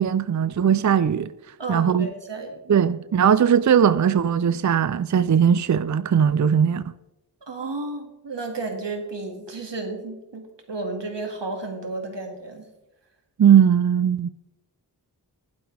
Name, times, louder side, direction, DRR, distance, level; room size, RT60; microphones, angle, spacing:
voice 1, 0.0-1.3 1.7-2.1 2.7-6.9 13.4-14.3, right 8 dB, 45° right, 0.5 m, -19 dB
voice 2, 1.6-2.6 7.5-12.7, right 3 dB, 85° right, 2.1 m, -32 dB
15.0 x 11.5 x 3.3 m
wide cardioid pair, 40°, 42 cm